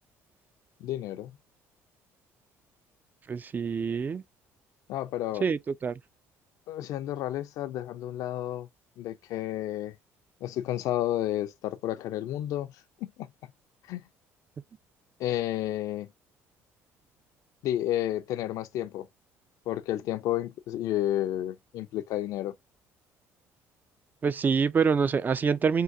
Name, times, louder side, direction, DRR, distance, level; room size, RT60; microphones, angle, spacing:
voice 1, 0.8-1.4 4.9-5.4 6.7-8.7 9.0-10.0 10.4-12.7 13.0-13.3 13.9-14.0 15.2-16.1 17.6-19.1 19.7-22.5, left 13 dB, 70° left, 0.4 m, -31 dB
voice 2, 3.3-4.2 5.4-6.0 24.2-25.8, right 6 dB, 30° right, 0.3 m, -26 dB
3.6 x 2.3 x 2.6 m
supercardioid pair, 80°, 6 cm